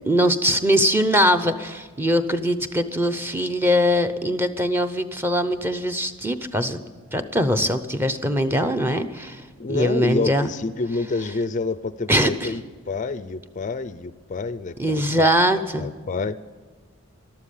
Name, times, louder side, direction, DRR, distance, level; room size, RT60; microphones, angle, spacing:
voice 1, 0.1-6.8 7.1-9.4 9.7-10.5 12.1-12.5 14.8-15.9, equal, 10° right, 8 dB, 0.7 m, -22 dB
voice 2, 9.6-16.4, left 3 dB, 35° left, 13 dB, 0.4 m, -28 dB
13.0 x 12.5 x 8.4 m, 1.5 s
head